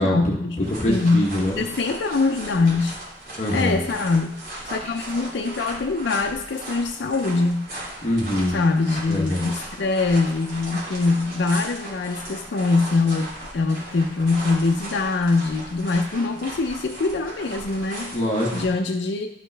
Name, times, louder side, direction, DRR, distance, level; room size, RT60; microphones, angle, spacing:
voice 1, 0.0-0.6 0.9-1.3 1.6-3.0 3.5-7.6 8.5-18.2 18.5-19.3, left 3 dB, 80° left, 4 dB, 0.5 m, -23 dB
voice 2, 0.6-1.6 3.4-3.8 8.0-8.5 9.1-9.5 18.1-18.6, left 1 dB, 40° left, -4 dB, 1.0 m, -23 dB
sound 1, 0.6-18.7, right 1 dB, 55° right, 2.7 m, -37 dB
12.0 x 5.1 x 3.3 m, 0.91 s
head